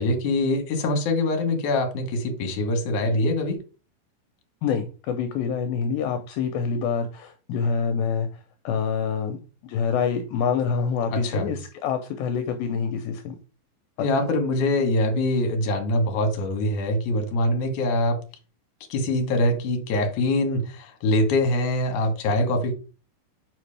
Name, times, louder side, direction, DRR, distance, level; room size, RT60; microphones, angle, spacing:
voice 1, 0.0-3.6 11.1-11.5 14.0-18.2 18.9-22.7, left 1 dB, 65° left, 2.4 m, -24 dB
voice 2, 4.6-8.3 8.6-9.4 9.6-13.4 14.0-14.1, left 6 dB, 80° left, 2.4 m, -26 dB
7.4 x 5.0 x 3.3 m
omnidirectional pair, 4.3 m